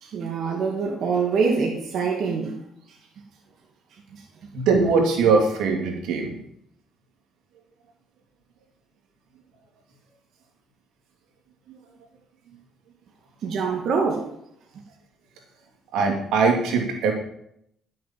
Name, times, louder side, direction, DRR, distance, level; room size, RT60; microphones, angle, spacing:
voice 1, 0.0-2.6 4.1-4.2 13.4-14.3, right 5 dB, 65° right, 0 dB, 2.3 m, -25 dB
voice 2, 4.5-6.4 15.9-17.1, right 4 dB, 85° right, 2 dB, 2.9 m, -21 dB
11.5 x 7.8 x 7.6 m, 0.73 s
cardioid pair, 110°, 0 cm